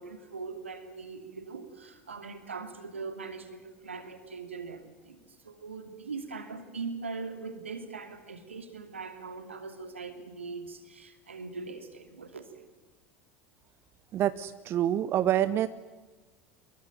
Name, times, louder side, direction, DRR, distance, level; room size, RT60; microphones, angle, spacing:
voice 1, 0.0-12.7, right 4 dB, 80° right, 8 dB, 2.8 m, -41 dB
voice 2, 14.1-15.7, right 11 dB, 40° right, 14 dB, 0.8 m, -26 dB
24.5 x 22.5 x 9.3 m, 1.2 s
figure-of-eight pair, 75°, 7 cm